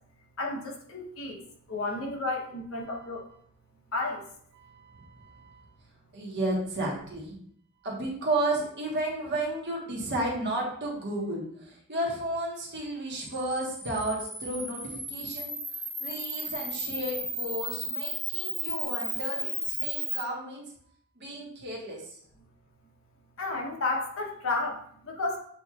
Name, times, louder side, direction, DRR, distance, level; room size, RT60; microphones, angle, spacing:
voice 1, 0.4-3.3 3.9-4.3 23.4-25.4, left 2 dB, 65° left, 0 dB, 0.9 m, -32 dB
voice 2, 4.6-5.6 6.1-7.4 7.8-15.5 16.0-20.7 21.2-22.2, right 1 dB, 50° right, -3 dB, 1.3 m, -33 dB
Camera, 13.2-20.2, right 1 dB, ahead, 0.7 m, -34 dB
7.5 x 3.0 x 2.4 m, 0.64 s
head